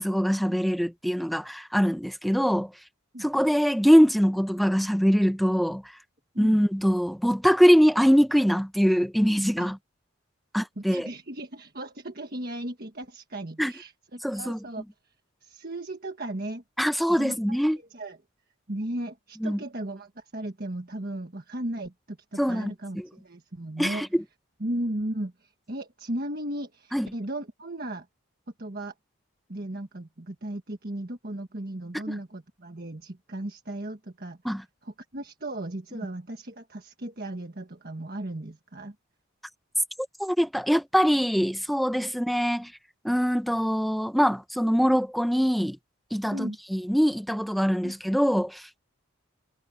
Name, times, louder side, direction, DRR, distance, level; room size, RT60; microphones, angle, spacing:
voice 1, 0.0-2.7 3.2-5.8 6.4-9.7 10.5-11.1 13.6-13.7 14.2-14.6 16.8-17.8 19.4-19.6 22.4-23.1 23.8-24.2 26.9-27.1 34.4-34.6 40.2-42.7 43.0-45.8 46.1-48.7, equal, ahead, 0.9 m, -23 dB
voice 2, 10.8-15.1 15.4-16.6 17.1-18.2 18.7-24.0 24.6-28.1 28.6-28.9 29.5-34.4 34.8-38.9 46.3-46.6 47.8-47.9, right 1 dB, 45° right, 1.5 m, -36 dB
head